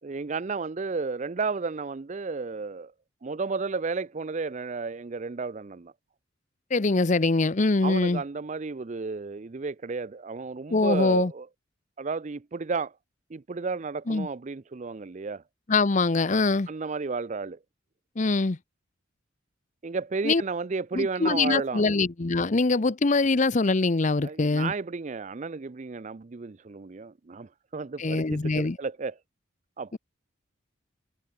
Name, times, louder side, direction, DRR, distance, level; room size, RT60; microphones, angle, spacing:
voice 1, 0.0-2.9 3.2-5.9 7.8-11.5 12.0-12.9 13.3-15.4 16.7-17.6 19.8-21.9 24.2-29.2 29.8-30.0, right 4 dB, 40° right, 0.5 m, -32 dB
voice 2, 6.7-8.2 10.7-11.3 14.1-14.3 15.7-16.7 18.2-18.6 20.2-20.4 20.9-24.7 28.0-28.8 29.9-30.0, left 3 dB, 40° left, 0.7 m, -23 dB
head